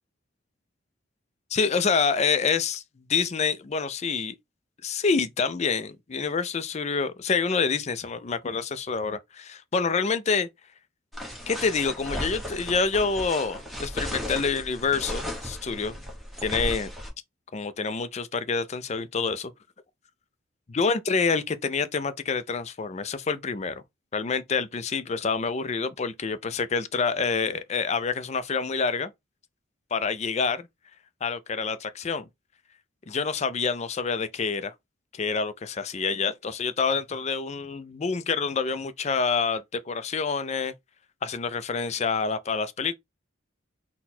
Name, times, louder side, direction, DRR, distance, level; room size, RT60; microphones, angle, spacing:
voice 1, 1.5-2.8 3.1-4.4 4.8-10.5 11.5-16.0 16.4-16.9 17.5-19.5 20.7-23.8 24.1-29.1 29.9-30.7 31.2-32.3 33.1-34.7 35.1-40.7 41.2-42.9, left 5 dB, 35° left, 0.4 m, -27 dB
sound 1, 11.1-17.1, equal, ahead, 1.1 m, -35 dB
4.0 x 2.2 x 4.2 m
head